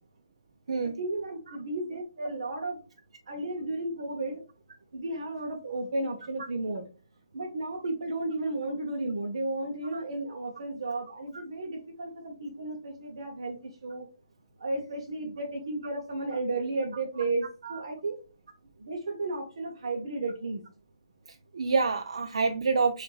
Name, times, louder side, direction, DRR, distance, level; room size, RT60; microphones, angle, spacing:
voice 1, 0.7-2.8 3.3-4.4 4.9-6.9 7.3-14.1 14.6-18.2 18.8-20.6, right 2 dB, 65° right, 0.7 m, -33 dB
voice 2, 21.5-23.0, right 4 dB, 85° right, 0.4 m, -27 dB
6.0 x 2.5 x 2.3 m
hypercardioid pair, 175°, 3 cm